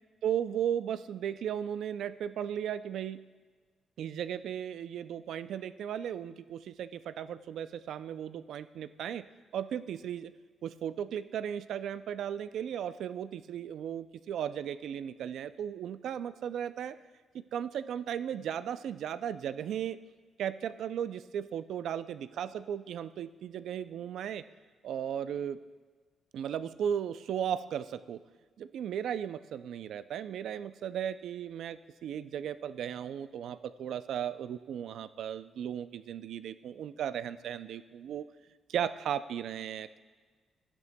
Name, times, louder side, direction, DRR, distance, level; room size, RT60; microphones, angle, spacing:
voice 1, 0.2-3.2 4.0-9.2 9.5-10.3 10.6-17.0 17.3-20.0 20.4-24.4 24.8-25.6 26.3-28.2 28.6-38.2 38.7-40.0, right 9 dB, 75° right, 14 dB, 0.3 m, -36 dB
13.5 x 10.5 x 2.2 m, 1.4 s
cardioid pair, 140°, 0 cm